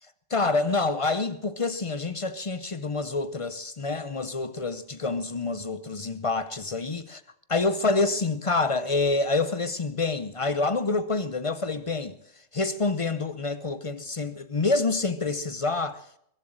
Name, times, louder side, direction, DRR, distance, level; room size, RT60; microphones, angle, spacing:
voice 1, 0.3-7.2 7.5-12.2 12.5-16.0, left 3 dB, 40° left, 0.4 m, -27 dB
22.5 x 7.6 x 7.5 m
omnidirectional pair, 1.4 m